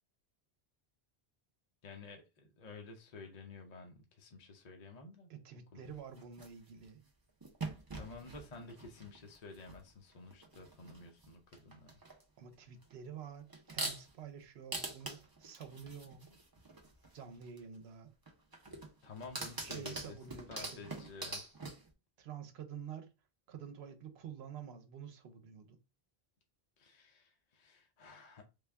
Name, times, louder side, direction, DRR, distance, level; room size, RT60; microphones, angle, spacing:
voice 1, 1.8-5.3 5.7-5.8 7.9-11.9 19.0-20.2 20.5-21.4 26.8-28.4, left 3 dB, 45° left, 0.7 m, -51 dB
voice 2, 5.3-7.0 12.4-16.4 17.1-18.1 19.6-20.8 22.2-23.1 23.5-25.8, right 7 dB, 80° right, 0.9 m, -49 dB
sound 1, 5.8-6.9 7.4-9.9 10.1-11.3 11.5-12.2 12.8-12.9 13.5-14.2 14.7-17.6 18.3-21.9, right 2 dB, 25° right, 0.6 m, -44 dB
3.4 x 2.3 x 3.3 m
omnidirectional pair, 1.0 m